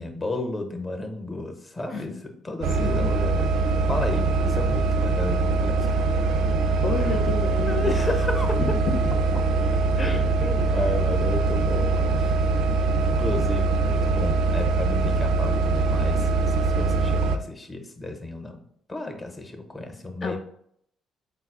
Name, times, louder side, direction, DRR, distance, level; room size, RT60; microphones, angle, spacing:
voice 1, 0.0-3.5 3.9-6.0 7.0-7.2 7.7-8.6 10.0-12.3 12.7-18.6 18.9-20.4, left 2 dB, 25° left, 5 dB, 0.8 m, -33 dB
sound 1, 2.6-17.4, right 3 dB, 80° right, 0.3 m, -23 dB
voice 2, 6.8-8.0 20.2-20.4, left 5 dB, 55° left, 2 dB, 0.4 m, -30 dB
4.1 x 2.3 x 4.6 m, 0.69 s
cardioid pair, 85°, 0 cm